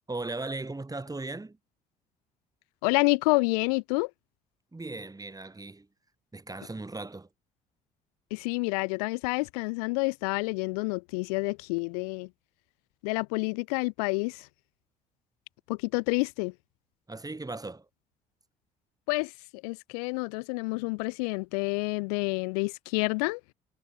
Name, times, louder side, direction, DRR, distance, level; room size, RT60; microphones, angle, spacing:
voice 1, 0.1-1.6 4.7-5.9 6.3-7.3 17.1-17.9, right 2 dB, 20° right, 5.0 m, -37 dB
voice 2, 2.8-4.1 8.3-12.3 13.0-14.5 15.7-16.5 19.1-23.4, left 30 dB, 80° left, 0.4 m, -28 dB
hypercardioid pair, 50°, 20 cm